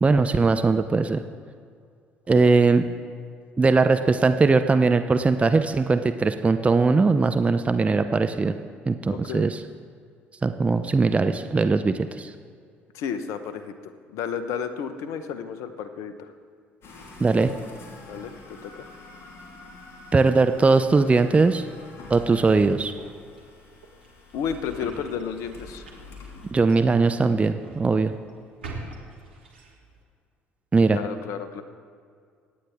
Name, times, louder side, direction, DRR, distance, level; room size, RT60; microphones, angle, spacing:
voice 1, 0.0-1.2 2.3-2.8 3.6-8.5 8.9-9.6 10.4-12.3 17.2-17.5 20.1-21.6 22.1-22.9 26.5-28.2 30.7-31.0, right 3 dB, 25° right, 9 dB, 0.6 m, -20 dB
voice 2, 9.1-9.5 12.9-16.3 18.1-18.9 24.3-25.9 30.9-31.6, left 7 dB, 65° left, 10 dB, 0.9 m, -32 dB
sound 1, 16.8-26.5, left 3 dB, 50° left, 3.2 m, -46 dB
sound 2, 22.5-30.0, right 3 dB, 90° right, 1.6 m, -45 dB
24.0 x 9.4 x 3.6 m, 2.2 s
hypercardioid pair, 55°, 6 cm